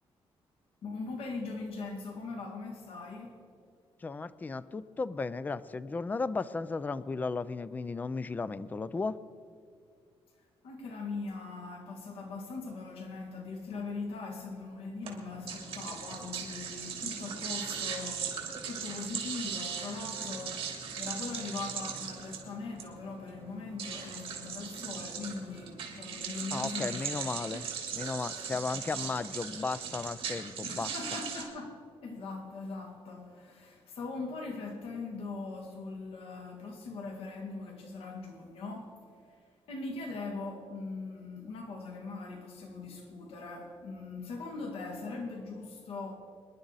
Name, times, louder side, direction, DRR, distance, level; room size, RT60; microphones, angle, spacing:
voice 1, 0.8-3.4 10.6-27.3 28.9-29.0 30.6-46.1, left 3 dB, 80° left, 2.0 m, -41 dB
voice 2, 4.0-9.2 26.5-27.7 27.9-30.9, left 4 dB, 15° left, 0.4 m, -35 dB
sound 1, 15.0-31.4, right 7 dB, 65° right, 2.9 m, -39 dB
25.0 x 11.0 x 4.0 m
cardioid pair, 170°, 10 cm